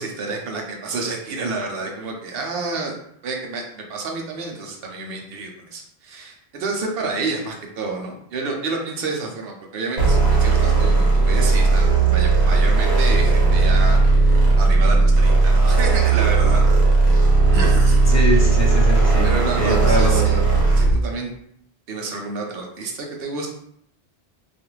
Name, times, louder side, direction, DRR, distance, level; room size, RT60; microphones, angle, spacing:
voice 1, 0.0-2.9 3.2-16.6 17.5-18.0 19.2-20.4 20.8-21.3 21.9-23.5, right 3 dB, 70° right, 1 dB, 0.8 m, -29 dB
sound 1, 10.0-21.0, right 3 dB, 85° right, 1.2 m, -16 dB
voice 2, 18.1-19.3 19.6-20.4, equal, 20° left, -4 dB, 0.6 m, -23 dB
2.5 x 2.4 x 3.0 m, 0.69 s
omnidirectional pair, 1.1 m